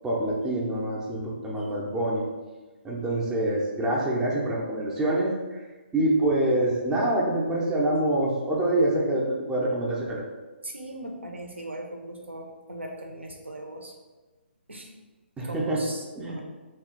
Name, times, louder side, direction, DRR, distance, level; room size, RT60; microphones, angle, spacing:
voice 1, 0.0-2.3 2.8-5.6 5.9-10.3 15.4-15.8 16.1-16.4, right 1 dB, 10° right, -4 dB, 0.4 m, -26 dB
voice 2, 10.6-13.9 14.7-14.9 15.4-16.4, right 1 dB, 80° right, 2 dB, 0.6 m, -39 dB
2.8 x 2.3 x 3.6 m, 1.2 s
figure-of-eight pair, 135°, 6 cm